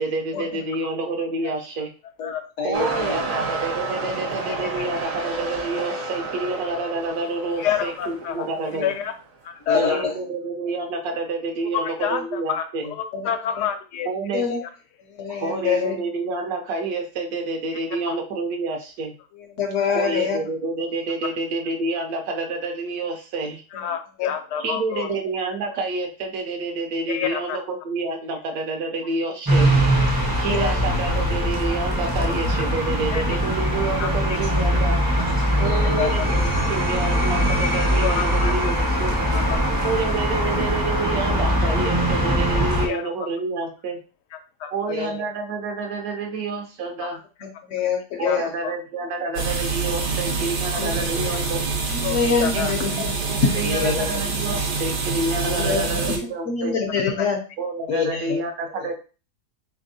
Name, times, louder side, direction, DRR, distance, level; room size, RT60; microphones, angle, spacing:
voice 1, 0.0-1.9 2.6-8.9 9.7-12.9 14.0-14.4 15.4-19.1 19.9-23.6 24.6-29.7 30.4-35.1 35.6-39.2 39.8-44.0 44.7-47.2 48.2-51.6 52.5-56.8 57.6-58.9, right 3 dB, 70° right, 3 dB, 1.2 m, -28 dB
voice 2, 2.6-3.2 9.7-10.1 13.1-13.2 14.3-14.6 15.2-16.0 19.6-20.4 24.2-24.3 25.1-25.2 30.5-30.7 35.6-36.1 44.9-45.2 47.7-48.4 50.8-50.9 52.0-53.0 53.6-54.0 55.6-55.9 56.5-57.4 57.9-58.4, left 6 dB, 60° left, 4 dB, 0.8 m, -25 dB
sound 1, 2.7-9.1 9.8-9.9, right 3 dB, 50° right, 0.9 m, -31 dB
voice 3, 7.6-8.4 8.8-9.1 9.4-10.0 11.8-14.1 14.6-14.7 18.1-18.2 23.8-25.1 27.1-27.6 30.3-30.7 32.2-32.3 33.1-33.2 34.0-34.4 35.2-35.3 36.2-36.3 38.0-38.5 39.3-39.9 40.3-40.5 42.8-43.0 44.6-44.9 47.0-47.1 48.2-48.4 48.6-48.7 50.7-50.8 51.3-51.4 52.0-52.7 57.2-57.3, left 9 dB, 85° left, 7 dB, 1.2 m, -28 dB
sound 2, 29.4-42.9, equal, 25° right, 0.4 m, -21 dB
sound 3, 49.3-56.2, right 4 dB, 85° right, 1.5 m, -26 dB
3.9 x 3.4 x 2.7 m, 0.34 s
omnidirectional pair, 1.7 m